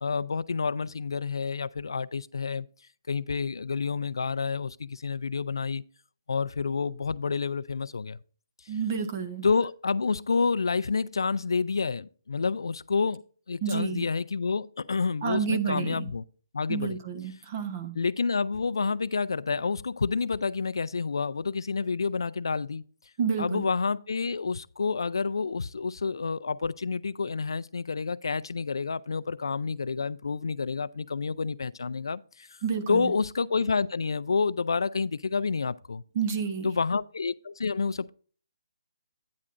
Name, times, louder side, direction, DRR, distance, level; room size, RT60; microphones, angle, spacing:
voice 1, 0.0-2.7 3.1-5.8 6.3-8.2 9.4-13.2 13.5-16.2 16.5-17.0 18.0-22.8 23.4-32.5 32.9-36.0 36.6-38.1, left 4 dB, 90° left, 0.4 m, -29 dB
voice 2, 8.7-9.5 13.6-14.1 15.2-16.1 16.7-18.0 23.2-23.7 32.6-33.1 36.1-36.7, right 6 dB, 30° right, 1.0 m, -30 dB
9.9 x 9.5 x 2.5 m
hypercardioid pair, 165°, 2 cm